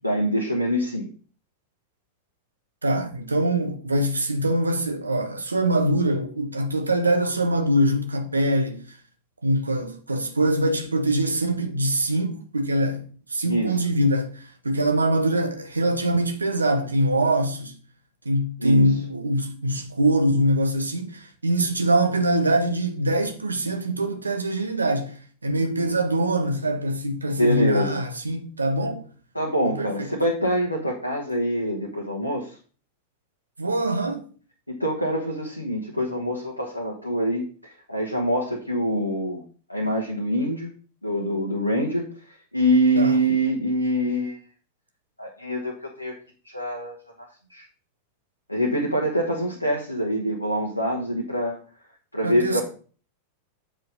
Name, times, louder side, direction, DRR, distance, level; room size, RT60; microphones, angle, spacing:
voice 1, 0.0-1.1 13.5-13.8 18.6-18.8 27.3-28.0 29.3-32.5 34.7-39.4 39.7-40.7 41.0-42.1 42.5-44.4 45.2-46.1 46.4-46.9 47.5-47.6 48.5-51.6 52.1-52.6, equal, 85° left, 1.3 m, -25 dB
voice 2, 2.8-8.9 9.4-17.8 18.2-25.2 25.4-29.1 29.6-30.1 33.6-34.3 43.0-43.2 52.2-52.6, right 1 dB, 80° right, 1.2 m, -23 dB
7.6 x 4.8 x 5.2 m
figure-of-eight pair, 90°, 0 cm